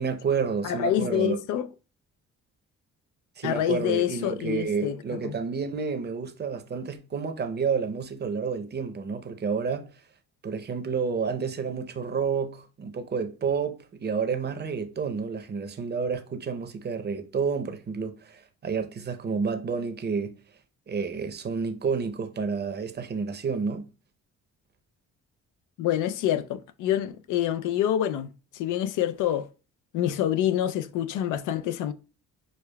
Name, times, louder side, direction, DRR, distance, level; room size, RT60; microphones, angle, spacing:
voice 1, 0.0-1.4 3.4-9.9 10.4-20.3 20.9-23.8, right 5 dB, 35° right, 0.6 m, -30 dB
voice 2, 0.6-1.7 3.4-5.0 5.2-5.3 25.8-28.3 28.5-29.5 29.9-31.9, left 11 dB, 85° left, 0.5 m, -26 dB
6.3 x 2.3 x 2.2 m
cardioid pair, 90°, 30 cm